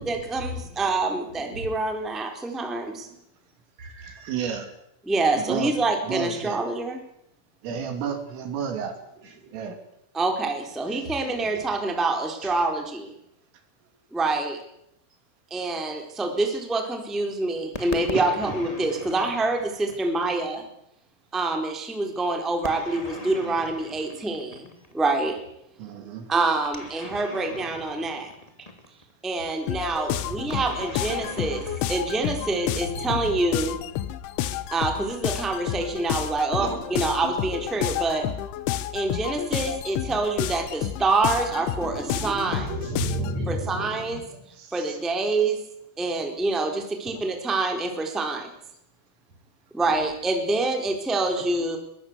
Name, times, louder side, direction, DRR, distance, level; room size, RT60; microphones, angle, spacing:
voice 1, 0.0-3.1 5.0-7.0 10.1-13.1 14.1-14.6 15.5-20.7 21.3-25.4 26.3-28.3 28.6-28.7 29.2-33.8 34.7-38.3 38.9-42.7 43.5-44.2 44.7-45.6 46.0-48.5 49.7-51.8, right 3 dB, ahead, 3 dB, 3.0 m, -26 dB
voice 2, 1.3-1.7 2.5-2.6 3.8-4.7 9.2-9.6 10.8-11.7 12.4-12.7 18.5-18.6 30.2-30.7 32.7-33.2 36.6-37.6 39.3-39.4 41.5-44.4 47.0-47.2 49.8-50.0 51.4-51.5, right 1 dB, 35° right, 6 dB, 4.8 m, -36 dB
voice 3, 4.3-4.7 5.4-5.7 6.0-6.6 7.6-8.9 9.5-9.8 18.2-18.3 25.8-26.3 44.7-45.0, right 8 dB, 75° right, 7 dB, 5.2 m, -31 dB
sound 1, 17.7-20.4 22.6-25.0 26.6-29.1 30.5-32.9, left 1 dB, 20° left, 0.9 m, -40 dB
sound 2, 29.7-43.4, left 12 dB, 75° left, 3.2 m, -30 dB
23.0 x 22.0 x 8.2 m, 0.77 s
omnidirectional pair, 6.0 m